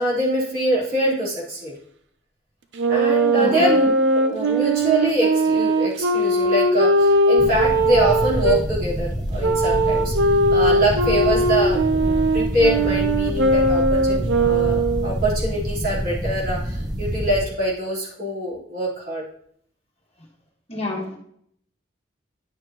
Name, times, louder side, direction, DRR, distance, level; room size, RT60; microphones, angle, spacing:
voice 1, 0.0-1.7 2.9-10.1 10.5-19.2, right 1 dB, 50° right, -8 dB, 3.6 m, -24 dB
Wind instrument woodwind instrument, 2.7-8.6 9.4-15.2, right 1 dB, 70° right, 0.7 m, -20 dB
voice 2, 3.4-3.7 20.7-21.2, left 2 dB, 30° left, -2 dB, 1.5 m, -29 dB
sound 1, 7.4-17.4, equal, 20° right, 1.2 m, -27 dB
10.5 x 6.3 x 2.9 m, 0.67 s
head